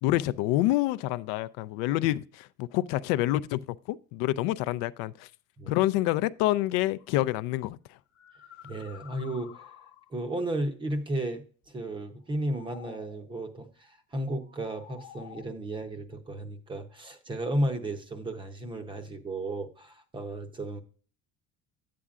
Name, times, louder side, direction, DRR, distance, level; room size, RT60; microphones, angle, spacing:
voice 1, 0.0-5.3 5.7-8.0, left 16 dB, 75° left, 0.5 m, -27 dB
sound 1, 7.0-7.1 7.9-10.3 12.2-13.3 14.3-15.4, left 10 dB, 35° left, 0.8 m, -51 dB
voice 2, 8.6-9.7 10.1-20.8, right 1 dB, 15° right, 0.6 m, -34 dB
11.0 x 8.6 x 2.4 m
cardioid pair, 175°, 36 cm